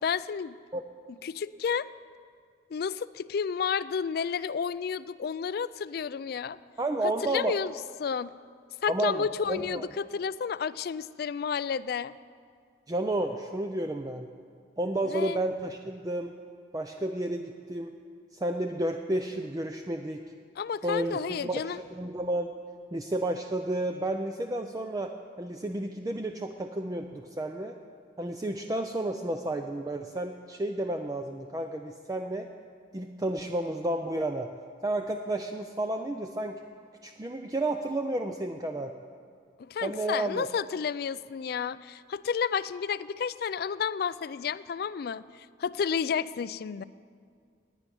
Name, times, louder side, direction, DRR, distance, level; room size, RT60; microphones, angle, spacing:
voice 1, 0.0-0.6 1.2-1.9 2.7-6.6 7.2-7.7 8.0-8.3 8.8-12.1 15.1-15.4 20.6-21.8 39.6-45.2 45.6-46.8, left 6 dB, 55° left, 17 dB, 0.3 m, -31 dB
voice 2, 6.8-7.6 8.9-9.9 12.9-14.3 14.8-16.3 16.7-17.9 18.3-20.2 20.8-22.5 22.9-27.7 28.2-32.5 32.9-34.5 34.8-36.6 37.0-38.9 39.8-40.5, right 1 dB, 20° right, 5 dB, 0.4 m, -31 dB
11.5 x 8.9 x 9.8 m, 2.2 s
head